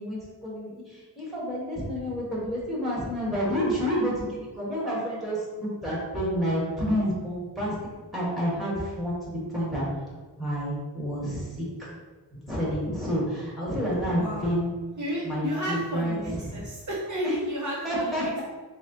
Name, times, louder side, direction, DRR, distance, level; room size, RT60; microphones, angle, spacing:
voice 1, 0.0-7.7 8.1-9.9 10.4-11.9 12.5-14.7 15.2-16.6 17.2-17.3 17.8-18.4, equal, ahead, -7 dB, 1.3 m, -29 dB
voice 2, 14.1-14.5 15.0-18.4, equal, 45° right, -4 dB, 0.6 m, -32 dB
4.1 x 2.1 x 3.9 m, 1.4 s
wide cardioid pair, 145°, 41 cm